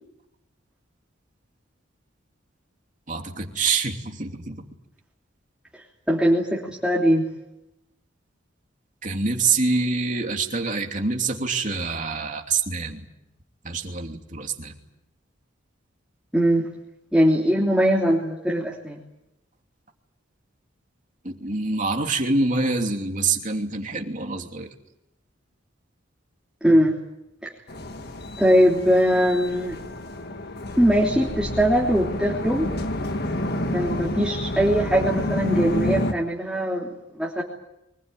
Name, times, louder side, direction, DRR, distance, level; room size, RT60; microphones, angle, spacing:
voice 1, 3.1-4.7 9.0-13.0 13.6-14.8 21.2-24.7, right 4 dB, 40° right, 3 dB, 3.0 m, -26 dB
voice 2, 6.1-7.2 16.3-16.7 17.1-19.0 26.6-26.9 27.4-27.5 28.4-29.7 30.8-32.7 33.7-36.9 37.2-37.4, equal, 5° right, -4 dB, 3.2 m, -21 dB
sound 1, 27.7-36.1, left 1 dB, 55° left, 1.7 m, -29 dB
25.0 x 20.5 x 9.3 m, 0.89 s
head